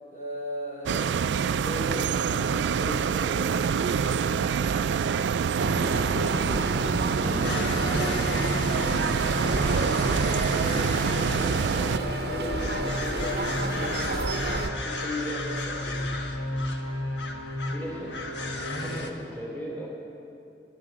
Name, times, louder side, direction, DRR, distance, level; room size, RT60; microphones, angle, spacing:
voice 1, 0.1-4.3 6.1-16.1, equal, 45° left, -2 dB, 3.1 m, -37 dB
sound 1, 0.9-12.0, right 7 dB, 90° right, 0.3 m, -26 dB
voice 2, 5.6-6.3 17.7-18.2 18.8-19.9, equal, 10° left, -3 dB, 2.9 m, -38 dB
sound 2, 5.6-14.7, right 2 dB, 65° right, 0.7 m, -30 dB
sound 3, 7.4-19.1, left 2 dB, 85° left, 1.3 m, -32 dB
26.5 x 11.5 x 4.1 m, 2.8 s
head